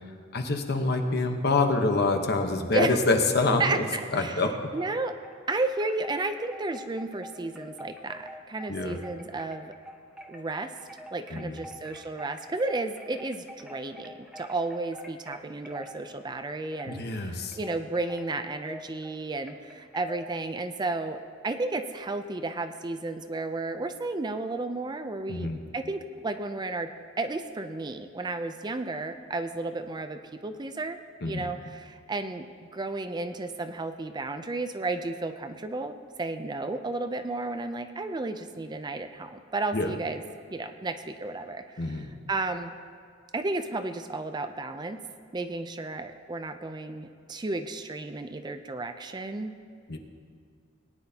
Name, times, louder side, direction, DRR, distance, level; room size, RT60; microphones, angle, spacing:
voice 1, 0.3-3.9 4.1-4.7 8.7-9.0 11.3-11.6 16.9-17.6 25.3-25.6 31.2-31.5 39.7-39.9 41.8-42.1 49.9-50.0, left 3 dB, 55° left, 5 dB, 1.0 m, -26 dB
voice 2, 3.6-4.5 4.7-5.1 5.5-9.7 10.3-10.7 11.1-26.9 27.2-31.0 31.2-32.5 32.7-40.2 40.5-42.8 43.3-45.0 45.3-49.5, right 2 dB, 20° right, 8 dB, 0.4 m, -33 dB
Wind chime, 4.8-5.4 5.8-20.3, equal, 5° right, 0.8 m, -47 dB
19.5 x 9.8 x 2.8 m, 2.3 s
head